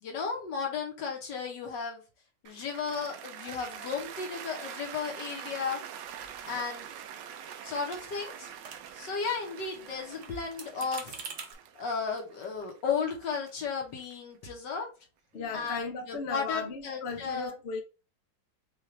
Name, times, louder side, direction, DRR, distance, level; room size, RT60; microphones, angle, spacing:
voice 1, 0.0-2.0 2.4-5.8 6.4-6.9 7.6-8.5 8.9-11.2 11.7-14.9 15.5-17.5, left 5 dB, 75° left, 1.9 m, -34 dB
Cheering / Applause, 2.5-14.7, right 9 dB, 80° right, 1.3 m, -45 dB
sound 1, 6.0-7.2 7.5-7.6 7.9-9.1 9.4-11.5, right 5 dB, 55° right, 1.0 m, -46 dB
voice 2, 15.3-17.8, left 4 dB, 50° left, 0.8 m, -36 dB
5.4 x 2.6 x 3.2 m
omnidirectional pair, 1.9 m